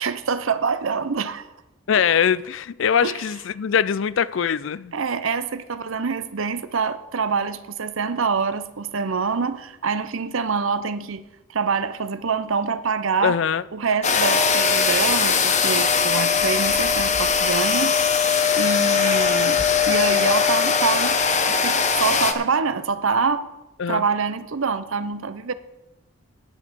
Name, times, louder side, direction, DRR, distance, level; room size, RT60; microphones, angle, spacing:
voice 1, 0.0-1.5 1.9-2.0 3.0-3.2 4.9-11.2 11.5-13.4 13.7-21.2 21.5-23.5 23.9-25.5, right 5 dB, 75° right, 0.7 m, -25 dB
voice 2, 1.9-4.9 13.2-13.6 23.8-24.1, left 7 dB, 65° left, 0.4 m, -22 dB
sound 1, 14.0-22.3, left 6 dB, 35° left, 0.9 m, -20 dB
10.0 x 8.3 x 6.8 m
head